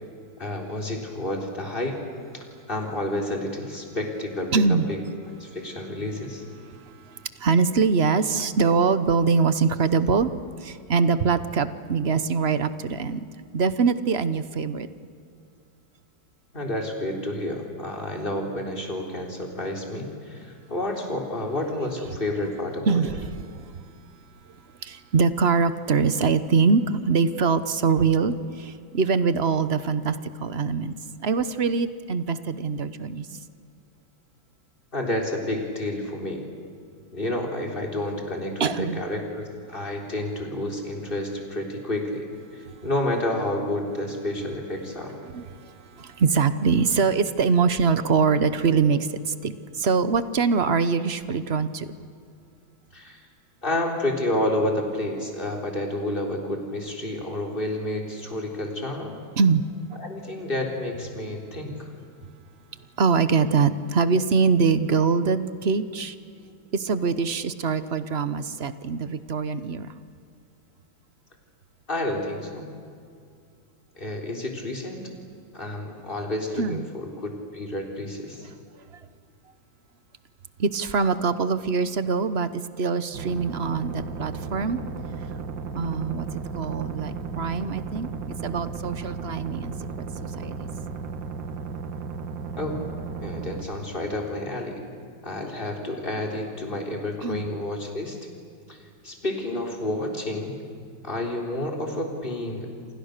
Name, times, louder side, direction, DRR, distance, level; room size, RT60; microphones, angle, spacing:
voice 1, 0.4-2.0 2.3-5.0 5.4-6.4 16.5-23.0 34.9-36.4 37.1-42.3 42.5-45.2 52.9-53.2 53.6-59.2 60.0-61.9 71.9-72.7 74.0-75.0 75.5-78.5 92.6-92.8 93.2-94.8 95.2-98.2 98.7-98.8 99.0-100.6 101.0-102.9, left 1 dB, 25° left, 1 dB, 4.0 m, -30 dB
voice 2, 4.5-4.9 7.0-10.3 10.6-13.2 13.5-14.9 22.9-23.1 23.6-23.7 24.8-30.9 31.2-33.3 38.6-39.0 45.3-51.9 59.4-59.6 63.0-66.1 66.7-69.9 76.6-76.8 80.6-84.8 85.7-86.3 86.5-90.0 90.4-90.7 97.2-97.5, right 5 dB, 40° right, 13 dB, 1.0 m, -23 dB
sound 1, 83.1-93.6, right 5 dB, 75° right, 2.1 m, -34 dB
29.0 x 27.0 x 6.7 m, 2.4 s
omnidirectional pair, 2.0 m